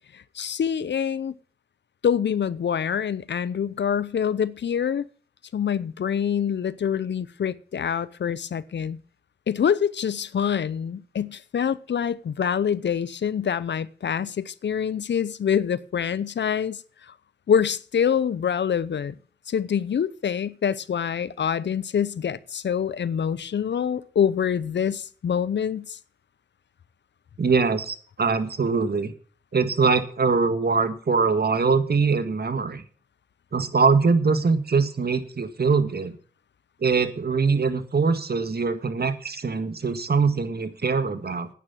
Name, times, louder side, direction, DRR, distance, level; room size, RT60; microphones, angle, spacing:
voice 1, 0.1-1.3 2.0-5.0 5.5-9.0 9.5-16.8 17.5-19.1 19.5-26.0, left 8 dB, 75° left, 0.7 m, -25 dB
voice 2, 27.4-29.1 29.5-32.8 33.5-36.2 36.8-41.5, right 4 dB, 60° right, 1.8 m, -23 dB
9.8 x 9.6 x 7.4 m
cardioid pair, 40°, 19 cm